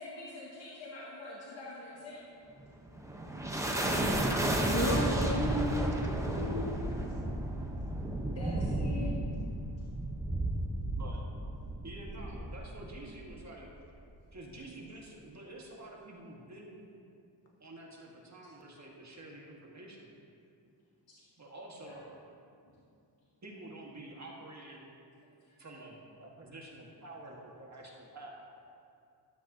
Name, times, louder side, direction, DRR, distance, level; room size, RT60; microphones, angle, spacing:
voice 1, 0.0-2.2 6.7-6.9 8.4-9.1 21.8-21.9 25.5-25.6, left 3 dB, 70° left, -7 dB, 1.9 m, -44 dB
sound 1, 2.6-13.4, right 1 dB, 5° right, 0.9 m, -33 dB
voice 2, 3.8-4.6 10.9-11.2 11.8-13.7 14.3-16.8 17.6-20.1 21.4-22.0 23.4-24.8 25.6-28.4, right 2 dB, 35° right, -2 dB, 1.6 m, -48 dB
voice 3, 4.6-6.8, equal, 30° left, 0 dB, 1.6 m, -34 dB
13.5 x 12.5 x 2.8 m, 2.4 s
wide cardioid pair, 130°, 46 cm